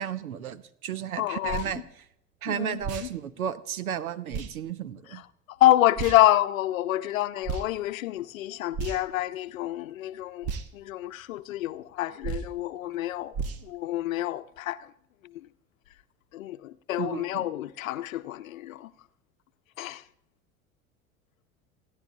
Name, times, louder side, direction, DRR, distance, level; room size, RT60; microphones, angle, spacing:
voice 1, 0.0-1.8 2.4-5.2 17.0-17.5, right 9 dB, 75° right, 0.9 m, -33 dB
voice 2, 1.2-1.8 2.5-3.1 5.1-5.2 5.5-13.3 13.6-14.9 16.3-18.9 19.8-20.0, left 14 dB, 65° left, 0.8 m, -27 dB
sound 1, 1.5-1.7 2.8-3.1 4.3-4.5 6.0-6.2 7.4-7.7 8.7-9.2 10.4-10.7 12.2-12.5 13.3-13.6, right 5 dB, 35° right, 1.1 m, -33 dB
29.5 x 10.5 x 2.7 m
figure-of-eight pair, 80°, 43 cm